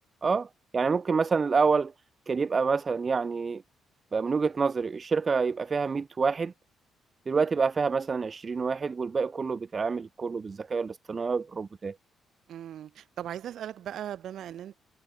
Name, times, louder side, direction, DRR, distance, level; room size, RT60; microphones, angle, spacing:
voice 1, 0.2-1.9 2.3-3.6 4.1-6.5 7.3-11.9, right 5 dB, 35° right, 0.6 m, -27 dB
voice 2, 12.5-14.7, right 10 dB, 70° right, 2.6 m, -38 dB
cardioid pair, 90°, 0 cm